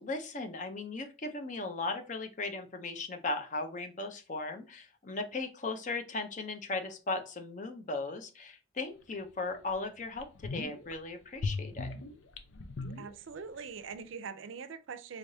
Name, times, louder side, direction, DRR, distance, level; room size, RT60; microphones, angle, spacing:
voice 1, 0.0-11.9, left 3 dB, 40° left, 0.6 m, -37 dB
sound 1, 9.1-9.2 9.7-9.8 10.1-10.9 11.4-13.6 13.9-14.0, left 3 dB, 80° left, 0.6 m, -38 dB
voice 2, 13.0-15.2, right 5 dB, 80° right, 0.5 m, -43 dB
3.7 x 3.4 x 2.7 m
head